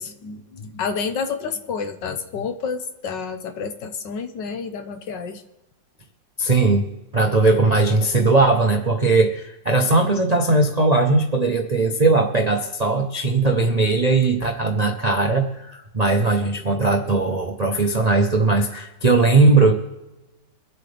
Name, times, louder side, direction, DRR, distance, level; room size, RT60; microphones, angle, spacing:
voice 1, 0.0-5.4, left 5 dB, 70° left, 7 dB, 1.6 m, -29 dB
voice 2, 6.4-19.7, right 3 dB, 40° right, 3 dB, 0.5 m, -19 dB
23.5 x 8.4 x 3.4 m, 1.0 s
omnidirectional pair, 2.0 m